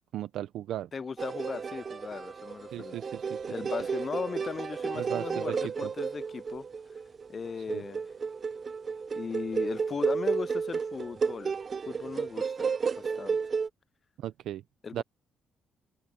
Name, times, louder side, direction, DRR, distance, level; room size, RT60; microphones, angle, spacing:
voice 1, 0.1-0.9 2.7-3.5 5.0-5.5 5.8-5.9 7.7-7.8 14.2-14.6 14.9-15.0, right 12 dB, 80° right, 0.7 m, -36 dB
voice 2, 0.9-3.0 3.5-6.6 7.3-8.1 9.1-11.5 11.9-12.7 13.0-13.4 14.8-15.0, left 5 dB, 40° left, 0.4 m, -37 dB
sound 1, 1.2-13.7, right 5 dB, 40° right, 0.5 m, -32 dB
open air
cardioid pair, 90°, 0 cm